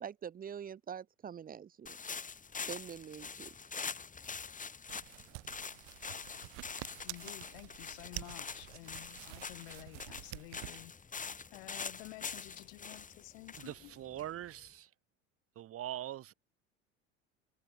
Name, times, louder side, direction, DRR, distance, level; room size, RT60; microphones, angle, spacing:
voice 1, 0.0-2.0 2.7-3.5, right 8 dB, 25° right, 0.8 m, -44 dB
sound 1, 1.9-14.6, left 5 dB, 20° left, 3.4 m, -45 dB
sound 2, 4.9-10.8, right 40 dB or more, 60° right, 1.1 m, -49 dB
voice 2, 7.0-10.9 11.2-14.0, left 27 dB, 65° left, 1.7 m, -51 dB
voice 3, 13.6-14.9 15.5-16.3, right 12 dB, 40° right, 1.5 m, -42 dB
hypercardioid pair, 75°, 35 cm